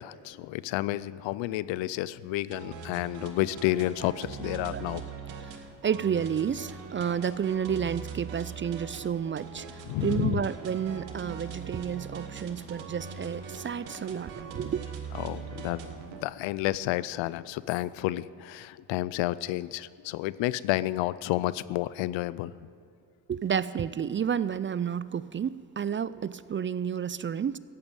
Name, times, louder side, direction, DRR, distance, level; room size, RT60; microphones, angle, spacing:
voice 1, 0.0-5.0 9.9-10.5 15.1-22.5, left 16 dB, 85° left, 18 dB, 0.5 m, -30 dB
sound 1, 2.5-16.2, right 6 dB, 85° right, 1.4 m, -41 dB
voice 2, 5.4-14.8 23.3-27.6, right 8 dB, 30° right, 17 dB, 0.4 m, -31 dB
14.0 x 8.8 x 8.8 m, 2.3 s
supercardioid pair, 60°, 44 cm